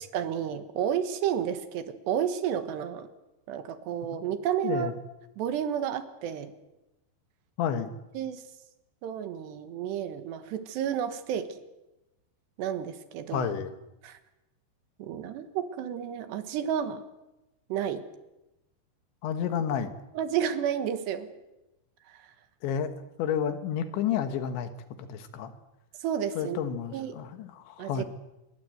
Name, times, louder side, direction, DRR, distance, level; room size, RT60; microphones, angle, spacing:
voice 1, 0.1-3.1 3.5-4.9 5.4-6.5 8.1-8.4 9.0-11.5 12.6-13.5 14.0-14.2 15.0-17.0 17.7-18.0 20.1-21.3 26.0-26.6 26.9-27.2 27.8-28.0, right 9 dB, 70° right, 10 dB, 3.4 m, -31 dB
voice 2, 7.6-7.9 13.3-13.7 19.2-20.0 22.6-22.9 23.2-24.7 25.0-25.5 26.4-28.0, left 8 dB, 80° left, 9 dB, 3.7 m, -30 dB
26.0 x 22.0 x 7.9 m, 0.99 s
omnidirectional pair, 5.2 m